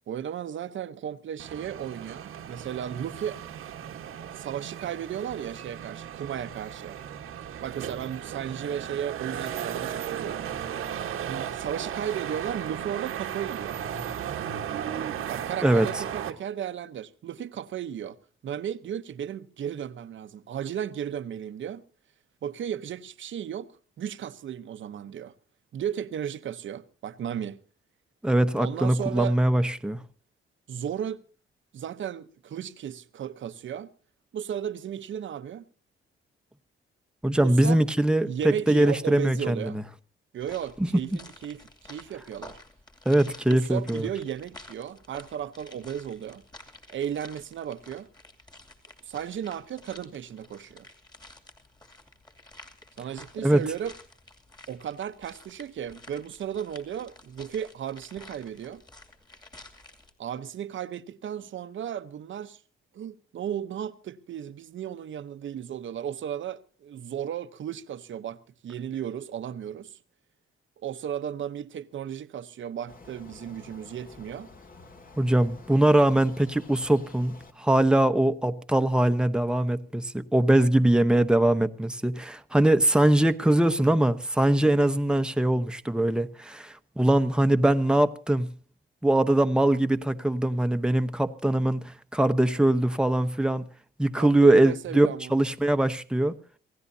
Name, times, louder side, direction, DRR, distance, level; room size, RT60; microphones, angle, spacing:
voice 1, 0.1-3.4 4.3-7.0 7.6-10.5 11.3-13.8 15.3-18.2 18.4-21.8 22.4-25.3 25.7-27.6 28.6-29.4 30.7-31.2 31.7-33.9 34.3-35.6 37.2-37.8 38.2-39.8 40.3-42.6 43.5-46.4 46.9-48.1 49.1-50.9 53.0-53.9 54.7-58.8 60.2-62.6 62.9-70.0 70.8-74.5 94.1-95.3, right 9 dB, 65° right, 0.9 m, -35 dB
sound 1, 1.4-16.3, right 9 dB, 90° right, 1.4 m, -35 dB
voice 2, 28.2-30.0 37.2-38.3 38.7-39.8 40.8-40.9 43.0-44.1 53.4-53.6 75.2-88.5 89.0-93.6 94.0-96.3, right 1 dB, 5° right, 0.9 m, -22 dB
sound 2, 40.4-60.1, left 2 dB, 20° left, 2.6 m, -51 dB
sound 3, 72.9-77.5, left 3 dB, 40° left, 2.3 m, -50 dB
27.0 x 16.5 x 2.8 m
cardioid pair, 115°, 21 cm